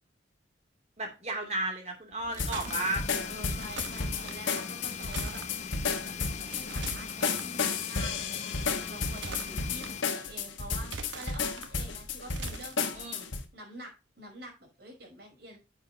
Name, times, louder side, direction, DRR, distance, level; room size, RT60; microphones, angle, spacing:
voice 1, 1.0-3.0 3.8-4.1 12.9-13.3, right 2 dB, 35° right, 3 dB, 2.9 m, -34 dB
sound 1, 2.1-2.8 3.6-4.4 5.0-5.5 6.4-7.4 9.0-9.9 10.8-11.7 12.3-12.7, right 4 dB, 80° right, 1.2 m, -42 dB
sound 2, 2.4-13.4, left 5 dB, 90° left, 1.4 m, -33 dB
sound 3, 2.6-10.0, left 7 dB, 40° left, 0.6 m, -41 dB
voice 2, 3.3-5.4 6.0-13.1 13.5-13.9 14.2-15.6, right 1 dB, 55° right, 1 dB, 4.8 m, -47 dB
10.0 x 7.3 x 2.9 m, 0.28 s
head